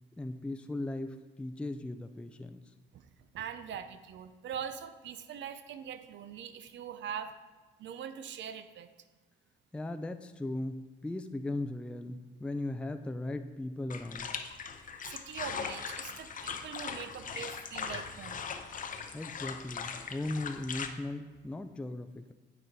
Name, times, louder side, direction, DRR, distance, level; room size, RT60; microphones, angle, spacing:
voice 1, 0.2-2.7 9.7-14.3 19.1-22.3, left 2 dB, 5° left, 8 dB, 0.3 m, -38 dB
voice 2, 2.9-7.4 7.8-8.9 15.0-18.5, right 8 dB, 65° right, 11 dB, 0.6 m, -42 dB
sound 1, 13.9-20.9, left 6 dB, 40° left, 0.6 m, -40 dB
9.1 x 4.2 x 4.5 m, 1.3 s
cardioid pair, 90°, 20 cm